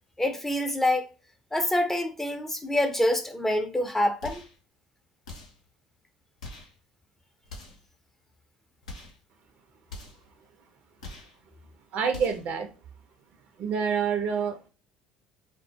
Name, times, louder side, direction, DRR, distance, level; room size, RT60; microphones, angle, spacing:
voice 1, 0.2-1.1 1.5-4.4, left 1 dB, 10° left, 0.5 m, -26 dB
sound 1, 4.2-4.6 5.2-5.7 6.4-6.8 7.4-7.9 8.8-9.2 9.9-10.3 11.0-11.4 12.1-12.5, left 2 dB, 85° left, 0.6 m, -43 dB
voice 2, 11.9-12.7 13.6-14.7, right 6 dB, 55° right, 0.6 m, -27 dB
2.1 x 2.0 x 2.8 m
hypercardioid pair, 65°, 3 cm